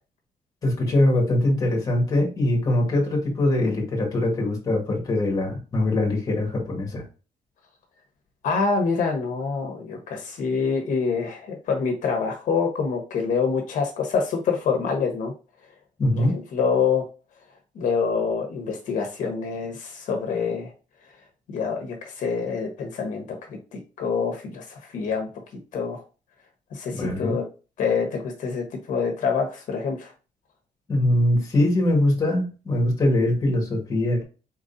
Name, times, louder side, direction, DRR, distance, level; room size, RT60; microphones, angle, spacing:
voice 1, 0.6-7.0 16.0-16.4 27.0-27.4 30.9-34.2, left 1 dB, 25° left, 1 dB, 1.7 m, -22 dB
voice 2, 8.4-15.3 16.2-16.3 16.5-17.0 17.7-20.7 21.5-25.3 25.7-26.0 26.7-27.4 27.8-30.1, left 5 dB, 70° left, 3 dB, 1.1 m, -26 dB
4.5 x 3.8 x 2.7 m, 0.33 s
cardioid pair, 170°, 14 cm